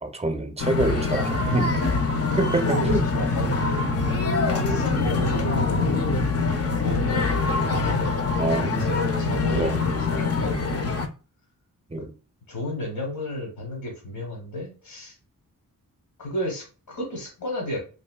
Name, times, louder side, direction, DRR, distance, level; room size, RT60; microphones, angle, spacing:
voice 1, 0.0-1.8 2.4-3.0 4.0-4.1 4.7-4.8 8.4-8.9 9.5-9.8 11.9-12.1, right 2 dB, 20° right, 0.6 m, -26 dB
sound 1, 0.6-11.1, left 3 dB, 45° left, 0.6 m, -24 dB
voice 2, 2.2-3.9 4.5-6.0 6.8-11.0 12.0-12.1 12.5-15.1 16.2-17.8, left 1 dB, 75° left, 1.1 m, -33 dB
3.1 x 2.6 x 2.3 m
cardioid pair, 60°, 35 cm